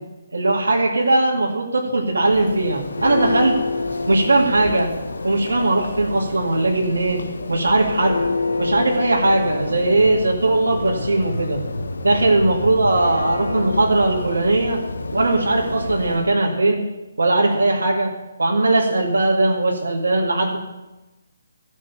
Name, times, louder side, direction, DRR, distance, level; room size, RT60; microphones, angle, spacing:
voice 1, 0.3-3.6 4.1-4.9 5.2-7.2 7.5-8.2 8.6-11.6 12.0-14.8 15.1-16.8 17.2-18.1 18.4-20.6, right 2 dB, 80° right, -2 dB, 2.2 m, -19 dB
Church bell, 2.1-16.4, left 3 dB, 75° left, 1.1 m, -28 dB
14.0 x 6.4 x 7.1 m, 1.1 s
figure-of-eight pair, 145°, 0 cm